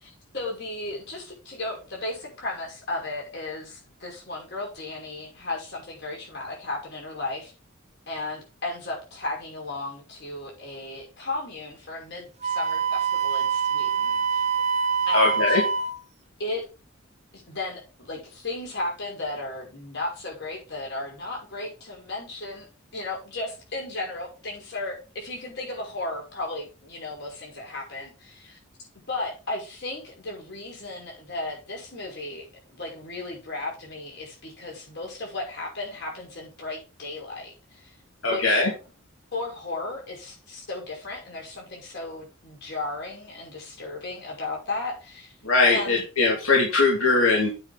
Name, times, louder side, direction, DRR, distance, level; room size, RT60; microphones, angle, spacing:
voice 1, 0.0-7.5 8.1-14.4 15.1-15.6 16.4-16.6 17.3-22.7 22.9-28.6 29.1-37.9 38.2-38.7 39.3-45.4 45.7-46.0, left 2 dB, 55° left, -2 dB, 5.9 m, -35 dB
Wind instrument woodwind instrument, 12.4-16.0, right 6 dB, 35° right, 1.2 m, -25 dB
voice 2, 15.1-15.6 38.2-38.7 45.4-47.5, left 3 dB, 85° left, -2 dB, 2.7 m, -20 dB
8.9 x 6.0 x 5.2 m, 0.32 s
head